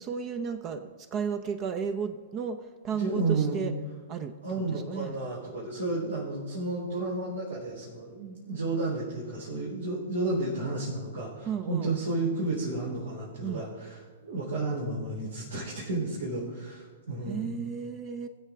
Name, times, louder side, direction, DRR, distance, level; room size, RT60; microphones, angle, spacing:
voice 1, 0.0-3.8 4.1-5.2 11.5-11.9 13.4-13.6 17.3-18.3, right 6 dB, 35° right, 9 dB, 0.8 m, -34 dB
voice 2, 2.9-3.6 4.4-17.6, right 2 dB, 85° right, -8 dB, 4.2 m, -32 dB
21.5 x 7.4 x 3.6 m, 1.5 s
figure-of-eight pair, 115°, 0 cm